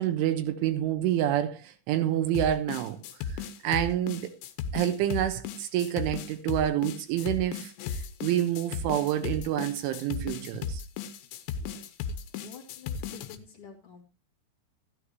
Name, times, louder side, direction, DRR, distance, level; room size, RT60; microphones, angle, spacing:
voice 1, 0.0-3.0 3.3-4.3 4.7-7.7 8.2-10.8, right 11 dB, 80° right, 3.5 m, -28 dB
sound 1, 2.4-13.4, left 6 dB, 75° left, 3.2 m, -35 dB
voice 2, 11.5-11.8 12.1-14.0, left 7 dB, 45° left, 1.9 m, -50 dB
13.0 x 13.0 x 2.9 m
omnidirectional pair, 5.6 m